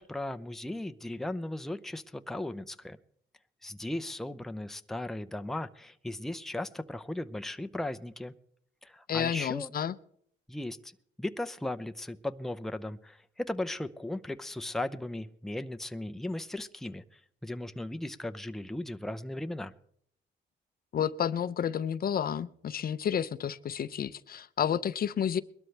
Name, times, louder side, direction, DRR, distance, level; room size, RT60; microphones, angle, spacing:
voice 1, 0.0-3.0 3.6-8.3 8.8-9.7 10.5-10.9 11.2-19.7, left 1 dB, ahead, 9 dB, 0.6 m, -37 dB
voice 2, 9.1-9.9 20.9-25.4, left 8 dB, 50° left, 15 dB, 0.6 m, -30 dB
21.5 x 12.5 x 3.3 m, 0.67 s
cardioid pair, 90°, 20 cm